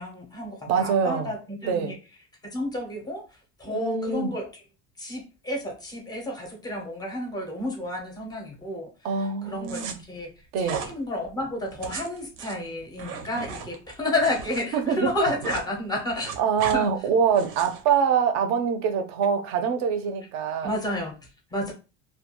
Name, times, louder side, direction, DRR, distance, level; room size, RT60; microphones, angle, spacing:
voice 1, 0.0-1.9 2.5-3.2 3.6-4.5 5.0-8.9 9.4-10.3 10.6-16.3 16.7-16.9 20.6-21.7, left 1 dB, 10° left, 0.5 m, -31 dB
voice 2, 0.7-1.3 1.6-2.0 3.7-4.3 9.0-10.0 10.5-10.8 14.7-15.1 16.4-20.7, right 7 dB, 50° right, 0.5 m, -24 dB
sound 1, 9.6-9.9 10.6-10.9 11.7-14.6 14.9-15.7 16.0-16.8 17.3-17.8, right 6 dB, 90° right, 0.7 m, -35 dB
2.3 x 2.2 x 2.8 m
cardioid pair, 165°, 36 cm